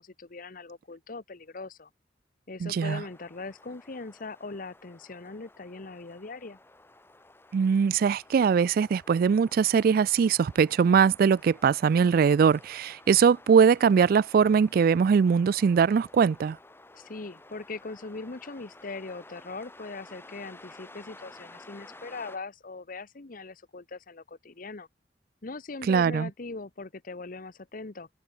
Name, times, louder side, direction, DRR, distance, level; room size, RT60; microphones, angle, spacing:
voice 1, 0.0-1.9 2.5-6.6 16.9-24.9 25.4-28.1, left 3 dB, 50° left, 1.0 m, -40 dB
voice 2, 2.6-3.0 7.5-16.6 25.9-26.3, right 6 dB, 55° right, 0.3 m, -21 dB
sound 1, 3.0-22.4, left 2 dB, 15° left, 2.2 m, -53 dB
head